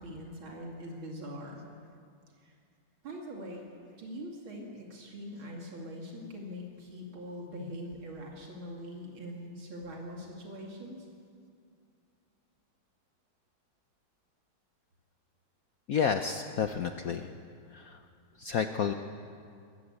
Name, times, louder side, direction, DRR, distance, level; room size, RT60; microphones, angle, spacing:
voice 1, 0.0-1.6 2.4-2.5 3.0-3.6 4.0-11.1, equal, 80° right, -1 dB, 3.2 m, -42 dB
voice 2, 15.9-17.3 17.7-18.0 18.4-18.9, left 7 dB, 60° left, 7 dB, 1.0 m, -30 dB
22.5 x 15.0 x 8.7 m, 2.3 s
omnidirectional pair, 2.2 m